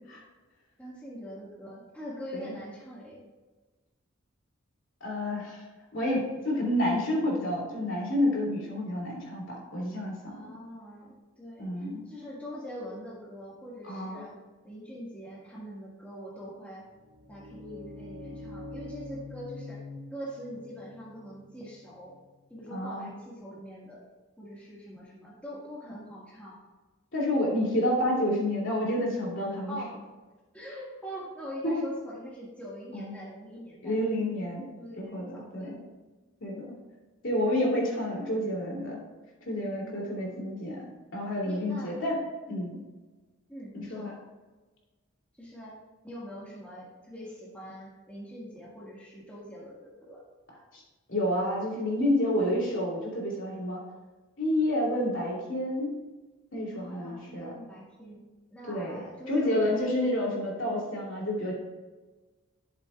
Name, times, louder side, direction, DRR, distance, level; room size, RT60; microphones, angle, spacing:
voice 1, 0.8-3.2 10.2-14.4 14.6-16.8 17.3-19.8 20.1-22.2 22.5-24.0 24.4-26.6 29.7-29.9 30.5-34.0 34.8-35.8 39.8-40.4 41.4-42.0 43.5-44.1 45.4-45.8 46.0-50.2 56.7-58.2 58.5-59.8, equal, 5° left, -7 dB, 1.7 m, -43 dB
voice 2, 5.0-5.6 5.9-10.5 11.6-12.1 13.9-14.2 22.7-23.1 27.1-29.8 31.6-31.8 32.9-33.1 33.8-34.7 34.9-35.2 35.5-35.8 36.4-36.6 37.2-39.0 39.4-40.9 41.1-42.2 42.5-42.8 43.7-44.1 50.7-50.8 51.1-53.8 54.4-56.0 56.5-57.5 58.7-61.5, left 1 dB, 65° left, -3 dB, 2.9 m, -29 dB
sound 1, 16.9-22.7, left 2 dB, 60° right, 1.9 m, -45 dB
12.0 x 7.2 x 2.4 m, 1.3 s
head